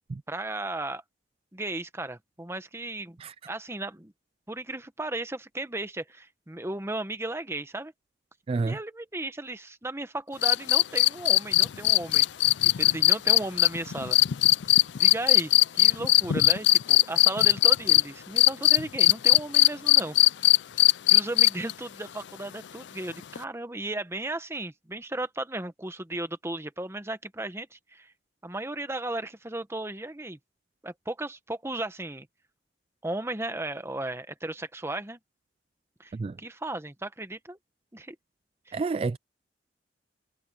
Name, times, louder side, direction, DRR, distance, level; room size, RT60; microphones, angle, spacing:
voice 1, 0.3-1.0 1.5-3.2 3.5-4.1 4.5-7.9 8.6-12.3 12.6-14.2 14.9-20.3 21.1-28.1 28.4-30.4 30.8-32.3 33.0-35.2 36.0-37.6 37.9-38.1 38.7-38.8, right 2 dB, 15° right, 1.1 m, -35 dB
voice 2, 8.5-8.8 36.1-36.4 38.7-39.2, right 4 dB, 30° right, 0.3 m, -29 dB
sound 1, 10.4-18.0 18.4-21.7 23.4-23.5, left 17 dB, 75° left, 0.4 m, -19 dB
head